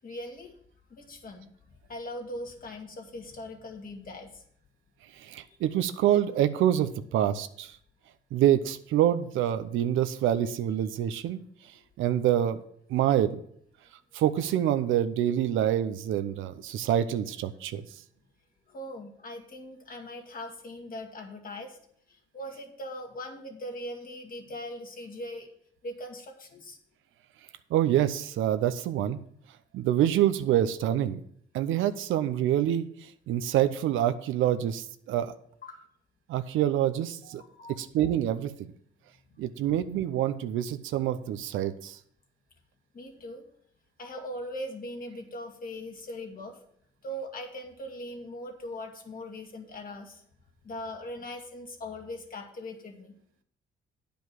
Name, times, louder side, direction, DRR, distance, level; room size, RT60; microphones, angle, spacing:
voice 1, 0.0-0.6 0.9-1.5 1.9-4.4 18.7-21.8 22.1-25.5 25.8-26.8 35.6-35.8 37.2-38.1 42.9-43.4 44.0-46.6 47.0-50.2 50.6-53.1, left 1 dB, 45° left, 2 dB, 2.1 m, -40 dB
voice 2, 5.2-7.7 8.3-11.4 12.0-12.6 12.9-13.4 14.1-17.8 27.7-29.2 29.7-31.2 31.5-32.9 33.3-35.3 36.3-37.4 37.8-38.5 39.4-42.0, right 11 dB, 85° right, 11 dB, 0.7 m, -26 dB
9.5 x 5.2 x 6.0 m, 0.65 s
cardioid pair, 90°, 20 cm